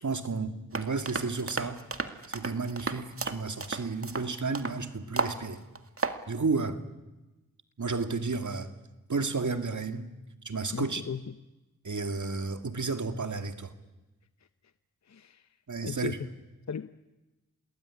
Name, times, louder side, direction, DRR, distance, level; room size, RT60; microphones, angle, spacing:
voice 1, 0.0-1.8 2.3-5.6 6.3-6.8 7.8-8.7 9.1-10.1 10.4-11.0 11.8-13.7 15.7-16.2, right 4 dB, 55° right, 2.3 m, -32 dB
sound 1, 0.7-4.8 5.2-5.4 5.8-6.2, right 3 dB, 40° right, 2.1 m, -33 dB
voice 2, 10.7-11.4 15.0-15.5 15.8-16.3 16.7-16.9, left 7 dB, 50° left, 0.9 m, -37 dB
28.0 x 20.0 x 9.9 m
cardioid pair, 55°, 35 cm